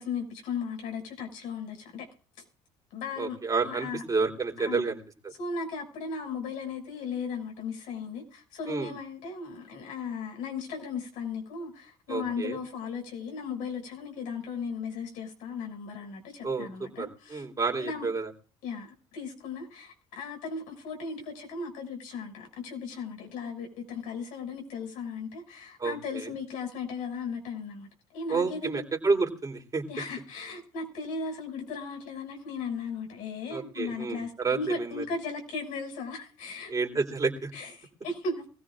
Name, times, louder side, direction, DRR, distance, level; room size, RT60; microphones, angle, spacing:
voice 1, 0.0-2.0 2.9-3.4 3.6-4.0 4.7-4.8 5.4-17.4 17.8-18.1 18.6-28.9 29.9-36.7 37.5-38.5, left 5 dB, 80° left, 6.5 m, -36 dB
voice 2, 3.2-5.3 8.7-8.9 12.1-12.6 16.4-18.3 25.8-26.3 28.3-29.8 33.5-35.0 36.7-37.5, right 4 dB, 25° right, 3.7 m, -30 dB
23.0 x 16.0 x 2.5 m
supercardioid pair, 85°, 13 cm